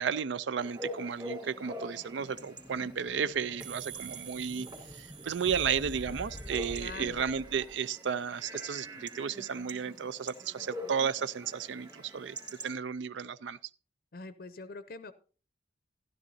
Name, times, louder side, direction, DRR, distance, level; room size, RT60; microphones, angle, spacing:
voice 1, 0.0-12.4 12.6-13.6, right 7 dB, 85° right, 0.4 m, -33 dB
Chatter / Bark / Livestock farm animals working animals, 0.6-12.7, equal, 25° right, 2.4 m, -45 dB
Explosion, 1.8-7.8, left 1 dB, 5° left, 0.7 m, -47 dB
sound 1, 3.6-7.2, right 10 dB, 45° right, 2.4 m, -48 dB
voice 2, 6.8-7.2 14.1-15.1, left 3 dB, 50° left, 0.5 m, -44 dB
13.0 x 12.0 x 2.7 m
head